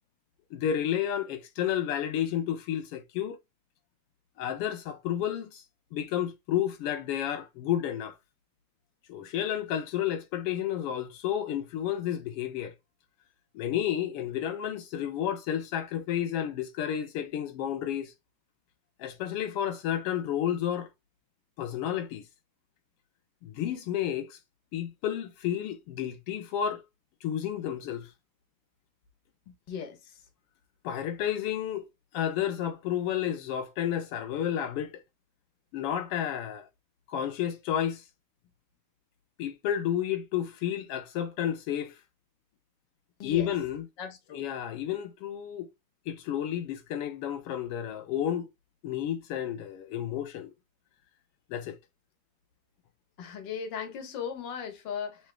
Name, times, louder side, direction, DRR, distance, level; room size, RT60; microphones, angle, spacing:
voice 1, 0.5-3.4 4.4-5.6 5.9-8.2 9.1-12.7 13.5-18.1 19.0-20.9 21.6-22.2 23.4-24.4 24.7-26.8 27.2-28.1 30.8-31.9 32.1-35.0 35.7-36.7 37.1-38.0 39.4-42.0 43.2-43.8 44.3-45.7 46.1-48.5 48.8-50.5 51.5-51.8, left 10 dB, 90° left, 1.3 m, -31 dB
voice 2, 29.7-30.2 43.2-43.5 44.0-44.5 53.2-55.3, left 7 dB, 50° left, 1.4 m, -37 dB
7.2 x 3.1 x 2.2 m
omnidirectional pair, 3.5 m